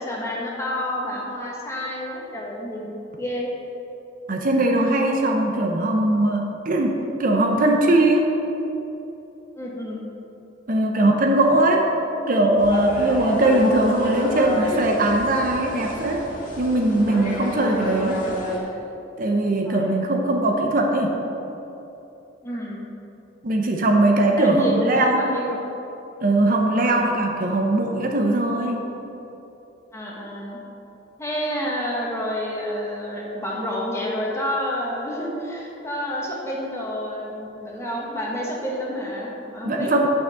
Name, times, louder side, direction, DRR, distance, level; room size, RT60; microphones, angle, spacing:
voice 1, 0.0-3.5 9.6-10.0 10.9-11.4 13.2-13.7 17.6-18.1 19.6-20.0 22.4-22.9 24.4-25.6 26.7-27.2 29.9-30.6 31.2-40.1, equal, 15° left, -4 dB, 1.4 m, -29 dB
voice 2, 4.3-8.3 10.7-11.9 12.3-16.2 16.6-18.2 19.2-21.1 23.4-25.4 26.2-28.9 39.6-40.1, right 1 dB, 45° right, 1 dB, 0.8 m, -20 dB
sound 1, 12.6-18.6, equal, 45° left, 2.0 m, -30 dB
6.5 x 5.8 x 7.1 m, 3.0 s
head